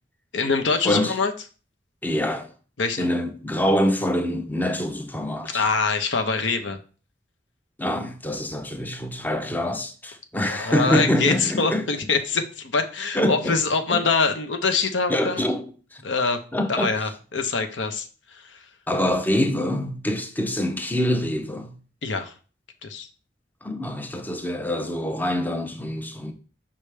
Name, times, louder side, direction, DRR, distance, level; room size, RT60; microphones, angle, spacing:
voice 1, 0.3-1.3 2.8-3.1 5.5-6.8 10.4-15.4 16.0-16.4 16.7-18.7 22.0-22.3 22.8-23.1, left 4 dB, 90° left, 0.8 m, -24 dB
voice 2, 2.0-2.5 3.0-5.6 7.8-11.8 13.1-13.6 13.9-14.0 15.1-15.6 15.9-16.0 16.5-16.9 18.9-21.7 23.6-26.3, left 1 dB, 10° left, 0.6 m, -25 dB
5.7 x 5.0 x 3.3 m
head